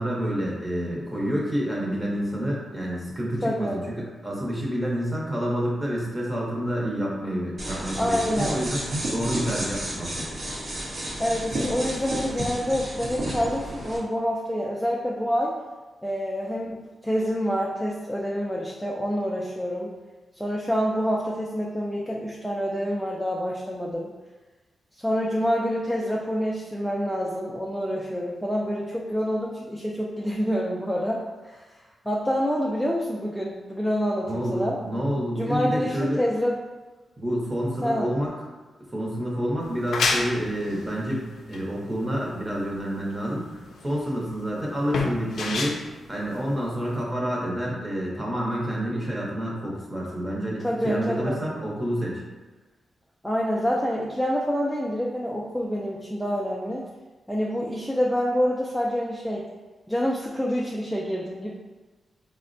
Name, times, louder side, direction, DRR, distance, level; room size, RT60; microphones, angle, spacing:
voice 1, 0.0-8.8 9.1-10.3 34.2-36.2 37.2-38.3 38.9-45.8 46.1-52.2, equal, 15° right, -4 dB, 0.8 m, -28 dB
voice 2, 3.4-3.8 8.0-8.6 11.2-15.6 16.0-19.9 20.4-24.1 25.0-31.7 32.1-34.8 35.2-36.6 37.8-38.2 50.6-51.4 53.2-56.8 57.3-59.5 59.9-61.5, equal, ahead, -4 dB, 0.3 m, -27 dB
sound 1, 7.6-14.0, right 1 dB, 60° right, 0.8 m, -31 dB
sound 2, 39.6-47.0, left 3 dB, 85° left, 0.3 m, -30 dB
4.0 x 2.1 x 2.5 m, 1.2 s
wide cardioid pair, 105°, 0 cm